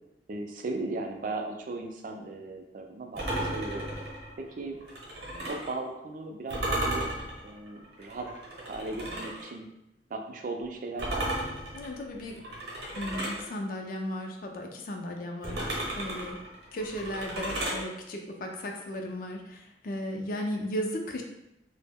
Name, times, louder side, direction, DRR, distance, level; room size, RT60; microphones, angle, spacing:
voice 1, 0.3-3.9 4.4-4.8 5.5-7.1 7.4-8.3 8.6-9.7 10.1-11.4, right 2 dB, 50° right, 3 dB, 0.3 m, -37 dB
sound 1, 3.2-5.7 6.5-9.5 11.0-13.5 15.4-17.8, right 1 dB, 65° right, 0.8 m, -34 dB
voice 2, 11.7-12.4 12.9-16.4 16.7-21.2, equal, 50° left, 2 dB, 0.4 m, -35 dB
2.1 x 2.0 x 3.4 m, 0.87 s
head